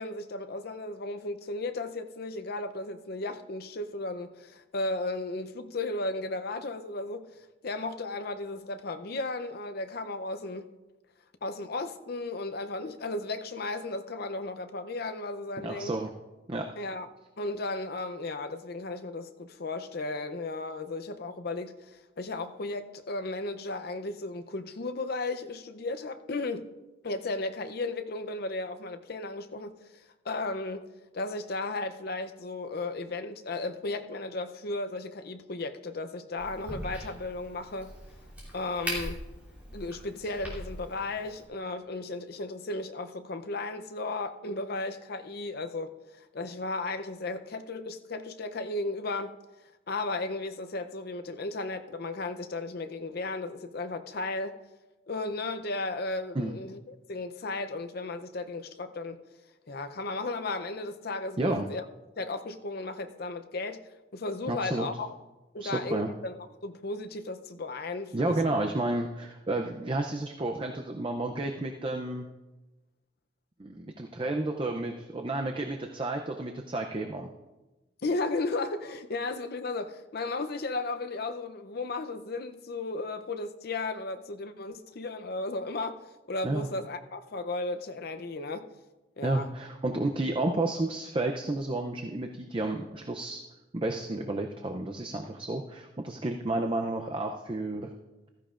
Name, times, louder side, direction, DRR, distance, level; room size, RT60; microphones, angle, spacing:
voice 1, 0.0-7.3 7.6-10.7 11.4-16.0 16.8-17.1 17.4-26.7 27.0-37.9 38.5-39.3 39.7-49.4 49.9-54.6 55.1-59.2 59.7-61.8 62.2-65.2 65.5-66.4 66.6-68.6 78.0-88.7 89.2-89.5, left 2 dB, 50° left, 0.6 m, -35 dB
voice 2, 15.6-16.1 16.5-16.7 56.4-56.5 61.4-61.7 64.5-64.9 65.6-66.1 68.1-72.3 73.6-77.3 86.4-86.7 89.2-93.4 93.7-97.9, right 2 dB, 25° right, 0.5 m, -31 dB
Crack, 36.4-41.4, equal, 5° right, 2.9 m, -40 dB
15.5 x 14.0 x 2.5 m
head